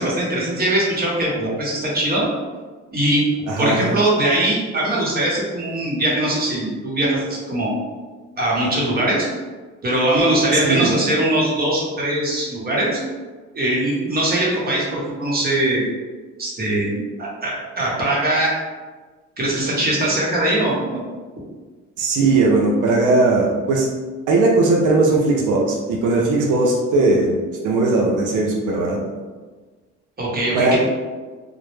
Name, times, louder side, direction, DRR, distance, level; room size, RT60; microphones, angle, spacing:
voice 1, 0.0-2.3 2.9-3.3 3.6-7.7 8.4-9.3 9.8-13.0 13.5-15.9 16.4-18.5 19.4-21.0 30.2-30.8, right 1 dB, 30° right, -5 dB, 0.8 m, -21 dB
voice 2, 3.5-3.9 10.5-11.0 22.0-23.9 24.3-27.4 27.6-29.2 30.5-30.8, right 3 dB, 85° right, -2 dB, 0.5 m, -18 dB
2.1 x 2.0 x 3.1 m, 1.4 s
cardioid pair, 90°, 30 cm